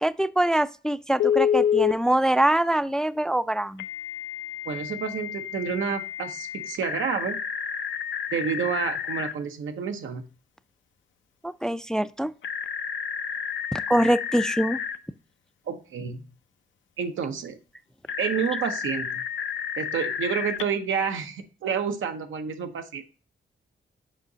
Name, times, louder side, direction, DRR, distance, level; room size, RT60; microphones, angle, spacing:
voice 1, 0.0-3.8 11.4-12.3 13.7-14.8, right 1 dB, 5° left, 0.3 m, -24 dB
Telephone, 1.2-1.9 3.8-9.3 12.4-15.0 18.1-20.6, left 8 dB, 80° left, 0.5 m, -29 dB
voice 2, 4.6-7.4 8.3-10.2 15.7-16.2 17.0-17.6 18.2-19.2 19.8-23.0, right 7 dB, 85° right, 0.7 m, -29 dB
7.3 x 4.8 x 2.7 m
cardioid pair, 50°, 20 cm